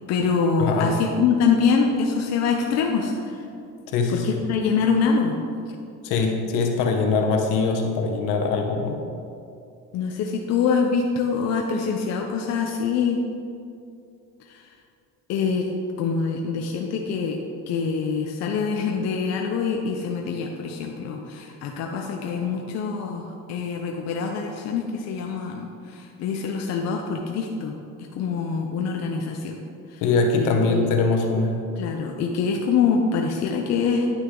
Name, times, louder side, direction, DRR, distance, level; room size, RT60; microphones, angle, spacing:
voice 1, 0.1-3.4 4.1-5.4 9.9-13.2 14.5-14.7 15.3-15.7 16.0-17.4 17.7-27.8 28.1-29.6 29.9-30.0 30.3-30.9 31.8-34.1, left 5 dB, 55° left, 2 dB, 0.7 m, -24 dB
voice 2, 0.6-0.9 3.9-4.4 6.0-9.0 30.0-31.6, left 4 dB, 80° left, 3 dB, 1.2 m, -22 dB
9.8 x 6.1 x 3.8 m, 2.5 s
cardioid pair, 140°, 31 cm